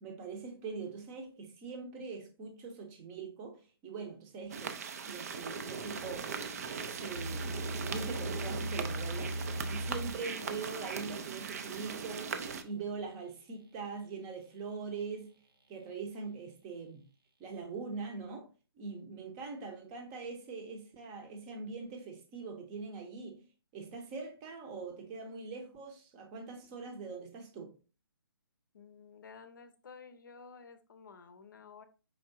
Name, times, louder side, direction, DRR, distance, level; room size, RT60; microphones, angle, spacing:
voice 1, 0.0-6.4 6.8-9.4 9.7-15.4 15.7-17.1 17.4-23.5 23.7-27.8, right 4 dB, 20° right, 0.8 m, -43 dB
sound 1, 4.5-12.6, right 6 dB, 40° right, 0.4 m, -40 dB
sound 2, 7.1-13.1, right 1 dB, 70° right, 1.1 m, -40 dB
voice 2, 28.7-31.9, left 5 dB, 50° left, 0.7 m, -53 dB
4.7 x 3.6 x 2.5 m
figure-of-eight pair, 135°, 13 cm